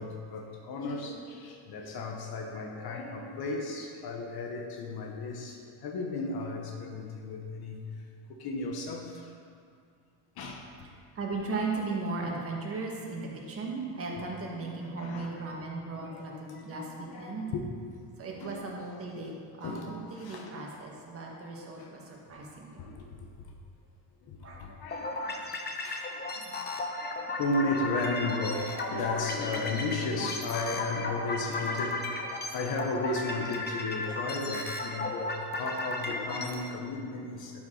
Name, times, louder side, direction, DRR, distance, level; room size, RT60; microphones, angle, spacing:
voice 1, 0.0-9.4 10.3-10.9 12.7-12.8 14.1-14.2 14.8-15.4 15.9-17.6 18.0-18.7 19.6-20.5 21.3-21.4 21.8-22.0 22.4-23.5 24.2-37.6, left 2 dB, 55° left, 1 dB, 1.1 m, -35 dB
voice 2, 11.2-17.5 18.2-22.8 24.4-24.6, right 3 dB, 30° right, -2 dB, 1.7 m, -37 dB
sound 1, 24.9-36.7, left 2 dB, 20° left, 1.0 m, -35 dB
12.0 x 6.0 x 3.9 m, 2.3 s
cardioid pair, 120°, 44 cm